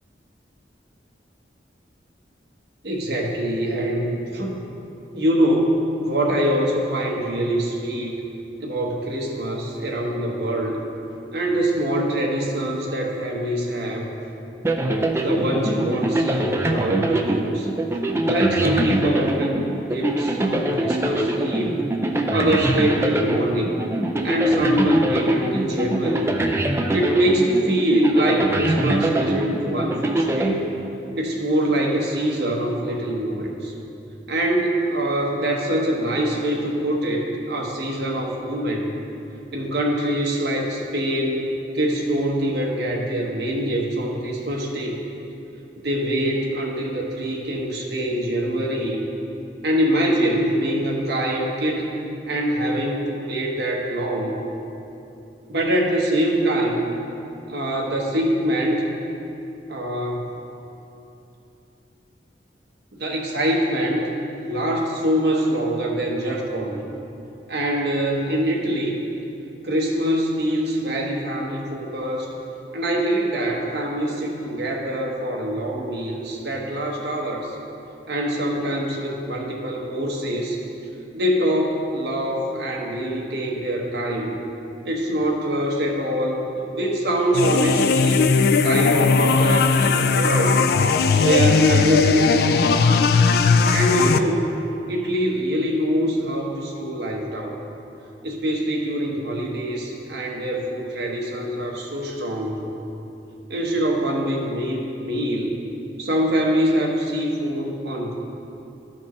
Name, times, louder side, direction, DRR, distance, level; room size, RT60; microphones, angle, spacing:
voice 1, 2.8-4.7 5.1-8.1 8.6-10.8 11.3-14.1 15.2-17.7 18.3-21.8 22.3-23.8 24.2-26.3 26.9-30.6 31.2-33.7 34.3-38.9 39.5-41.5 41.7-45.0 45.8-49.0 49.6-52.0 52.3-54.4 55.5-56.8 57.5-58.9 59.7-60.3 62.9-64.1 64.4-66.9 67.5-69.0 69.6-72.3 72.7-77.6 78.1-80.6 81.1-84.4 84.8-88.2 88.6-90.6 91.2-93.0 93.7-94.5 94.9-97.6 98.2-102.7 103.5-105.5 106.0-108.2, right 1 dB, 65° right, -1 dB, 1.1 m, -24 dB
sound 1, 14.6-31.2, right 1 dB, 15° right, 0.4 m, -24 dB
sound 2, 87.3-94.2, left 5 dB, 60° left, 0.3 m, -18 dB
13.0 x 4.3 x 3.1 m, 2.8 s
head